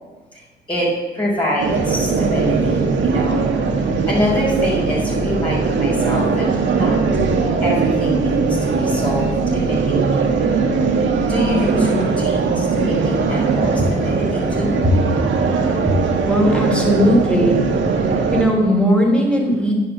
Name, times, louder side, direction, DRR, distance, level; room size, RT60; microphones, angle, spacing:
voice 1, 0.7-3.4 3.9-7.0 7.6-10.2 11.2-14.8, equal, 25° left, -7 dB, 4.3 m, -25 dB
sound 1, 1.6-18.4, right 4 dB, 70° right, 1.9 m, -19 dB
voice 2, 16.3-17.7 18.0-19.7, equal, 5° left, 0 dB, 3.5 m, -17 dB
10.0 x 7.6 x 7.6 m, 1.3 s
cardioid pair, 90°, 20 cm